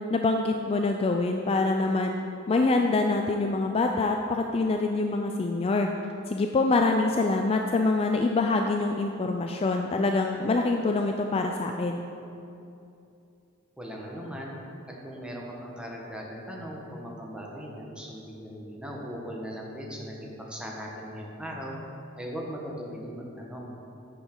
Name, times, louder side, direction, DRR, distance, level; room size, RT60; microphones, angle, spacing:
voice 1, 0.0-2.2 2.5-5.9 6.3-12.0, left 3 dB, 30° left, 3 dB, 0.3 m, -25 dB
voice 2, 13.8-14.6 15.0-21.8 22.2-23.7, equal, 5° right, -3 dB, 1.2 m, -38 dB
10.0 x 7.0 x 3.8 m, 2.7 s
head